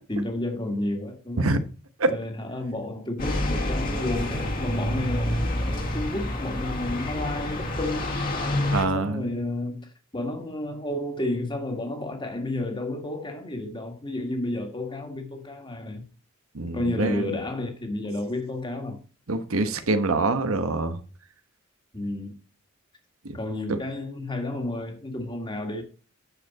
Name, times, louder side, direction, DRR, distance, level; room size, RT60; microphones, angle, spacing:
voice 1, 0.1-1.6 2.1-8.2 8.9-16.0 16.7-19.0 21.9-22.4 23.3-25.8, left 1 dB, 20° left, 1.8 m, -31 dB
sound 1, 3.2-8.8, left 1 dB, 40° left, 2.0 m, -28 dB
voice 2, 8.7-9.2 16.5-17.1 19.3-21.0, right 2 dB, 90° right, 1.2 m, -24 dB
9.6 x 6.7 x 4.2 m
head